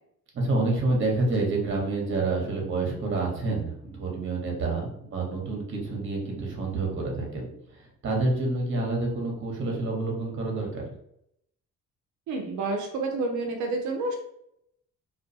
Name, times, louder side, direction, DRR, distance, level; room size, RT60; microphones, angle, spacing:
voice 1, 0.3-10.8, right 2 dB, 40° right, 0 dB, 0.9 m, -28 dB
voice 2, 12.3-14.2, right 3 dB, 75° right, 2 dB, 0.5 m, -29 dB
2.4 x 2.2 x 2.6 m, 0.74 s
cardioid pair, 90°, 30 cm